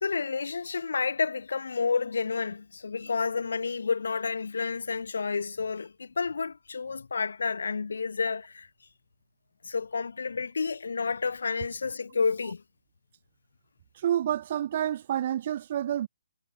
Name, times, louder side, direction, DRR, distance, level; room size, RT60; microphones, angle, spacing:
voice 1, 0.0-8.7 9.6-12.6, left 5 dB, 80° left, 1.0 m, -30 dB
voice 2, 14.0-16.1, right 11 dB, 30° right, 0.6 m, -28 dB
hypercardioid pair, 175°, 0 cm